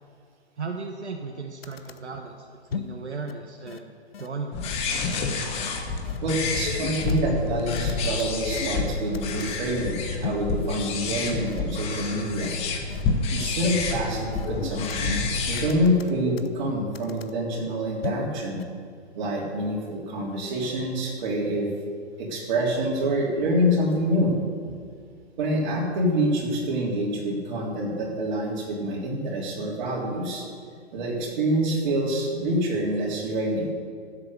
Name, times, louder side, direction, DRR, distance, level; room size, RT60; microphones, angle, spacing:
voice 1, 0.6-2.4 2.6-3.9 4.2-4.6, right 4 dB, 80° right, 3 dB, 1.3 m, -35 dB
sound 1, 1.3-1.4 1.6-2.0 2.7-3.0 3.3-3.4 3.7-3.8 4.1-4.3 4.6-4.7 5.1-5.2 5.6-5.7 6.0-6.2 6.5-7.2 7.7-8.9 9.1-9.5 10.2-10.5 11.0-11.1 11.5-11.6 11.9-12.1 12.4-12.5 12.9-13.0 13.4-13.5 13.8-14.0 14.3-15.0 15.5-16.6 16.9-17.3 18.0-18.3 18.6-18.7, left 8 dB, 60° left, 0.9 m, -36 dB
sound 2, 4.5-15.8, left 4 dB, 20° left, 1.1 m, -29 dB
voice 2, 6.2-12.5 13.3-18.6 19.2-21.7 22.2-24.3 25.4-30.4 30.9-33.7, equal, 45° right, -2 dB, 3.5 m, -26 dB
15.0 x 7.9 x 6.7 m, 2.2 s
figure-of-eight pair, 135°, 33 cm